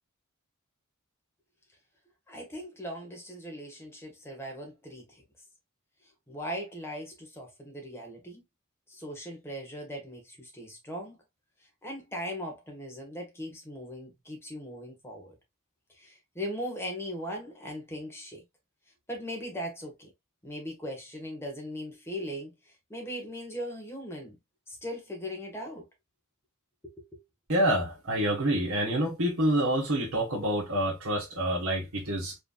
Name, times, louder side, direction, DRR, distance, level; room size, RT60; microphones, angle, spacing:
voice 1, 2.3-5.2 6.3-8.4 8.9-11.2 11.8-15.3 16.0-18.4 19.1-20.1 20.4-24.3 24.7-25.8 26.8-27.2, equal, 10° left, 1.6 m, -39 dB
voice 2, 27.5-32.4, right 1 dB, 80° right, 1.7 m, -27 dB
5.0 x 3.5 x 2.4 m
head